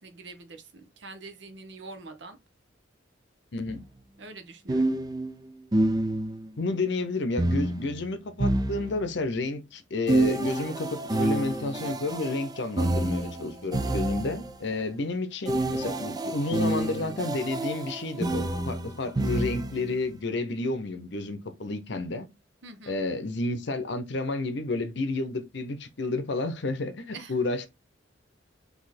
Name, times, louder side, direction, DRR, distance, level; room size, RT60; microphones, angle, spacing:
voice 1, 0.0-2.4 4.2-5.0 22.6-23.0 27.1-27.3, right 3 dB, 65° right, 0.8 m, -45 dB
voice 2, 3.5-3.8 6.6-22.3 22.9-27.7, left 2 dB, 65° left, 0.7 m, -31 dB
sound 1, 3.7-3.8 4.7-6.5 7.4-9.3 10.1-14.6 15.4-20.0, right 1 dB, 20° right, 0.4 m, -28 dB
4.1 x 2.8 x 4.2 m
head